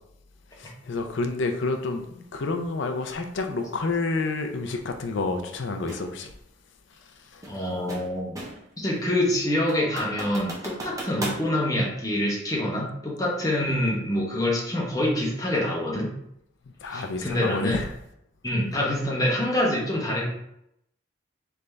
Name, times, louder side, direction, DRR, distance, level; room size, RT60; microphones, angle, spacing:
voice 1, 0.6-6.3 7.3-7.6 16.8-17.9 18.6-18.7, left 3 dB, 70° left, 5 dB, 0.5 m, -29 dB
sound 1, 5.9-6.1 7.4-8.7 9.1-9.2 9.7-11.5, right 1 dB, 15° right, 0.7 m, -36 dB
voice 2, 7.5-8.3 8.8-16.1 16.9-17.8 18.4-20.3, left 1 dB, 20° left, -3 dB, 0.9 m, -26 dB
3.9 x 3.4 x 3.3 m, 0.78 s
head